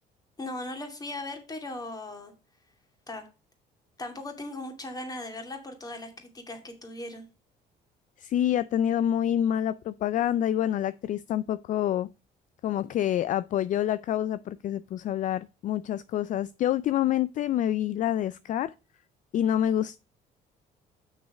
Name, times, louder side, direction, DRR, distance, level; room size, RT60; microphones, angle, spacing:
voice 1, 0.4-2.3 3.1-3.3 4.0-7.3, left 2 dB, 20° left, 2.4 m, -38 dB
voice 2, 8.2-12.1 12.6-18.7 19.3-20.0, left 11 dB, 50° left, 0.4 m, -27 dB
6.4 x 6.3 x 4.9 m
cardioid pair, 110°, 17 cm